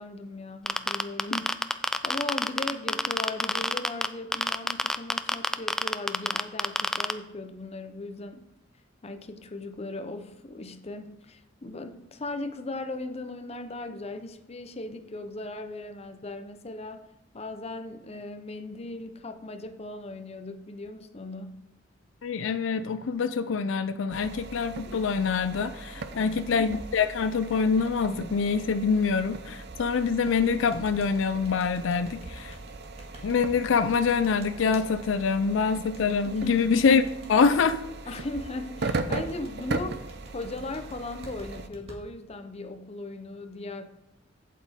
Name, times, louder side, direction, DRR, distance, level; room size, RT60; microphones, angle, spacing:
voice 1, 0.0-8.5 9.0-17.1 17.3-21.6 26.1-26.4 36.2-36.7 38.1-43.9, left 2 dB, 35° left, 8 dB, 0.7 m, -38 dB
sound 1, 0.7-4.1 4.3-7.1, left 1 dB, 5° left, 0.3 m, -25 dB
voice 2, 22.2-32.6 33.2-37.0 37.3-37.8, left 5 dB, 80° left, 11 dB, 0.4 m, -25 dB
sound 2, 24.1-41.7, right 3 dB, 60° right, 0.6 m, -38 dB
sound 3, 30.3-34.8 35.9-37.6 39.1-42.0, right 1 dB, 35° right, 1.9 m, -49 dB
8.4 x 8.0 x 3.6 m, 0.96 s
head